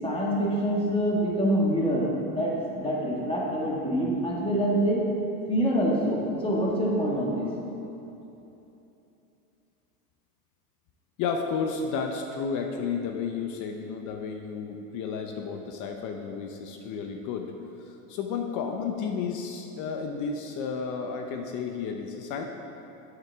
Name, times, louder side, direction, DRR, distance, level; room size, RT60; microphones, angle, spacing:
voice 1, 0.0-5.0 5.5-7.5, equal, 10° left, -3 dB, 1.7 m, -26 dB
voice 2, 11.2-17.5 17.9-22.4, left 5 dB, 45° left, 4 dB, 0.7 m, -32 dB
8.3 x 8.1 x 3.5 m, 2.9 s
supercardioid pair, 110°, 43 cm